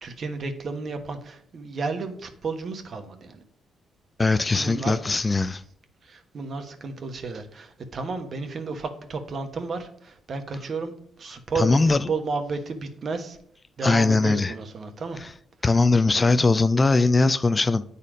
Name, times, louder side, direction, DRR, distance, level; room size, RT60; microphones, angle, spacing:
voice 1, 0.0-3.4 4.6-5.0 6.0-10.9 11.2-13.4 13.8-15.3, right 4 dB, 50° right, 1.2 m, -32 dB
voice 2, 4.2-5.6 11.6-12.0 13.8-14.5 15.6-17.8, left 3 dB, 25° left, 0.4 m, -20 dB
8.9 x 4.2 x 5.0 m
cardioid pair, 90°, 0 cm